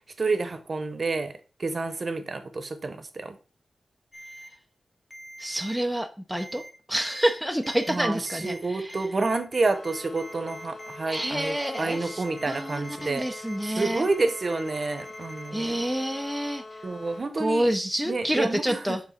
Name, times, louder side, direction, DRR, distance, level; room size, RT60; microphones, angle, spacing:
voice 1, 0.2-1.3 1.6-3.3 7.9-13.3 13.7-15.8 16.8-17.7 18.1-19.0, right 3 dB, 35° right, 0.8 m, -29 dB
Ringtone, 4.1-4.5 5.1-5.8 6.4-6.7 7.0-7.3 7.6-8.0 8.3-8.6 8.9-15.5, equal, 25° left, 1.2 m, -44 dB
voice 2, 5.4-6.6 6.9-9.0 11.1-14.1 15.5-16.8 17.4-19.0, equal, ahead, 0.5 m, -28 dB
sound 1, 9.7-17.2, left 2 dB, 50° left, 1.2 m, -44 dB
7.3 x 3.8 x 5.6 m
wide cardioid pair, 170°, 0 cm